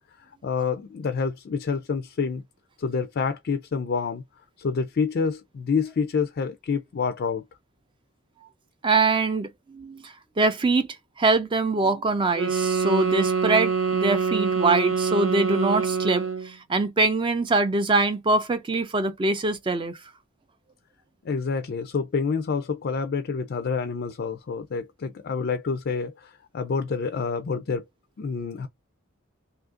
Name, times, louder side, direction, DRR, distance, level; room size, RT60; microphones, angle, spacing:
voice 1, 0.4-2.4 2.8-4.2 4.6-7.4 21.2-27.8 28.2-28.7, left 5 dB, 50° left, 0.4 m, -27 dB
voice 2, 8.8-10.9 11.2-20.0, right 3 dB, 25° right, 0.3 m, -23 dB
sound 1, 12.3-16.5, right 5 dB, 70° right, 0.8 m, -25 dB
2.7 x 2.5 x 3.6 m
head